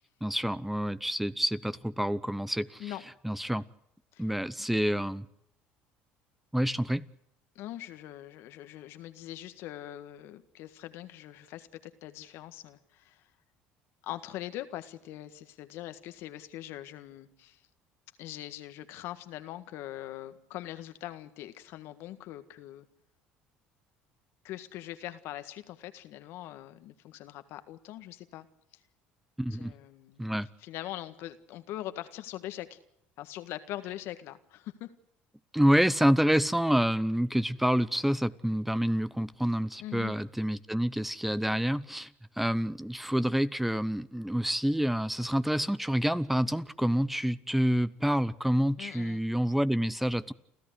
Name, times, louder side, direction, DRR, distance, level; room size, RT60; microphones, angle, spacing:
voice 1, 0.2-2.8 3.2-3.6 4.2-5.2 6.5-7.0 29.4-29.7 30.2-30.5 35.5-42.1 42.4-50.3, equal, 5° right, 16 dB, 0.8 m, -28 dB
voice 2, 7.5-13.3 14.0-17.6 18.2-22.9 24.4-28.5 28.7-28.8 29.5-30.3 30.6-32.8 33.2-34.9 39.8-40.2 48.8-49.2, left 14 dB, 70° left, 10 dB, 1.7 m, -42 dB
30.0 x 13.5 x 8.2 m, 0.78 s
supercardioid pair, 85°, 4 cm